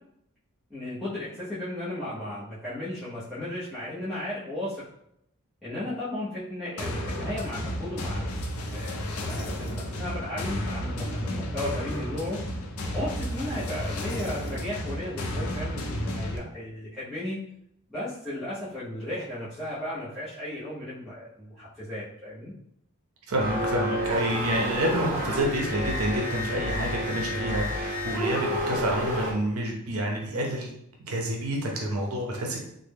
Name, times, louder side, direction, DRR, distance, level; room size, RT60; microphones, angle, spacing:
voice 1, 0.7-4.8 5.6-8.4 8.7-12.4 12.9-17.4 17.9-22.5, left 1 dB, ahead, -13 dB, 0.7 m, -35 dB
sound 1, 6.8-16.4, equal, 85° left, 0.6 m, -32 dB
voice 2, 23.3-30.7 31.1-32.6, right 1 dB, 75° right, 0 dB, 0.6 m, -28 dB
sound 2, 23.4-29.3, equal, 35° right, 1.0 m, -30 dB
3.2 x 2.1 x 3.4 m, 0.77 s
head